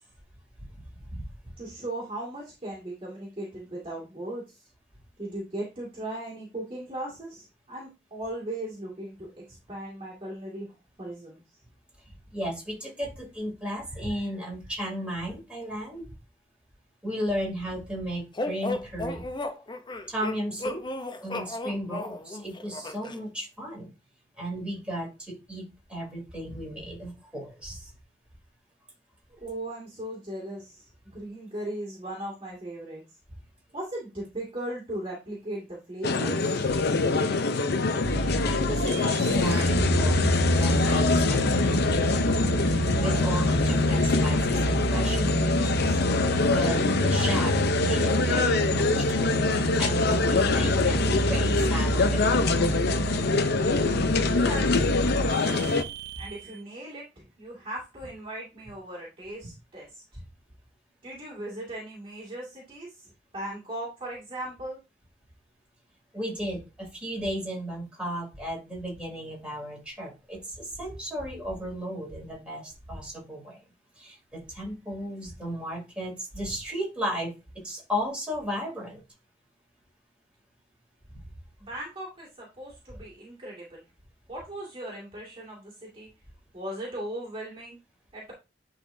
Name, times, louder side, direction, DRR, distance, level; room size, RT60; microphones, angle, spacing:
voice 1, 0.7-1.3 12.3-16.1 17.0-19.2 20.1-20.8 21.2-23.9 24.4-25.6 25.9-27.9 38.2-41.8 42.9-49.3 49.8-52.8 66.1-73.6 74.0-77.3 77.6-79.0 81.1-81.2, equal, 5° right, -3 dB, 3.3 m, -34 dB
voice 2, 1.6-4.6 5.2-10.7 11.0-11.4 29.4-33.0 33.7-37.3 54.3-55.5 56.2-60.0 61.0-64.8 81.6-83.8 84.3-86.1 86.5-87.8 88.1-88.3, right 1 dB, 30° right, -6 dB, 2.2 m, -38 dB
sound 1, 18.4-23.2, left 2 dB, 25° left, 0.7 m, -34 dB
sound 2, 36.0-55.8, left 3 dB, 60° left, 0.6 m, -24 dB
sound 3, 38.0-56.6, right 3 dB, 60° right, 0.5 m, -30 dB
10.5 x 4.0 x 2.7 m, 0.28 s
head